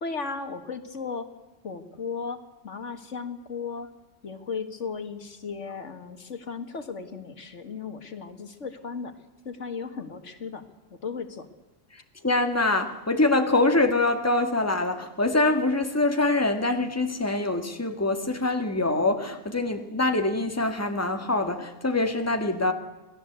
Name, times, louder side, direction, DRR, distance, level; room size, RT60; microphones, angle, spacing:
voice 1, 0.0-1.3 1.6-3.9 4.2-9.1 9.5-10.6 10.9-11.5, left 5 dB, 70° left, 8 dB, 2.0 m, -35 dB
voice 2, 12.2-22.7, left 2 dB, 10° left, 6 dB, 1.9 m, -24 dB
27.0 x 18.5 x 8.1 m, 1.1 s
omnidirectional pair, 1.3 m